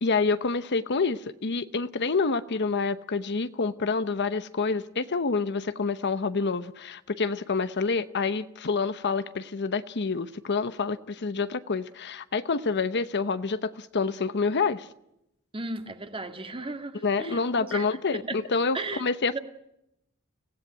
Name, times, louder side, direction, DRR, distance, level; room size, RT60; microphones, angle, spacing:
voice 1, 0.0-14.9 17.0-19.4, left 4 dB, 50° left, 0.8 m, -27 dB
voice 2, 15.5-17.8 18.3-18.4 18.7-19.0 19.3-19.4, right 3 dB, 25° right, 1.9 m, -35 dB
25.5 x 17.0 x 9.9 m
head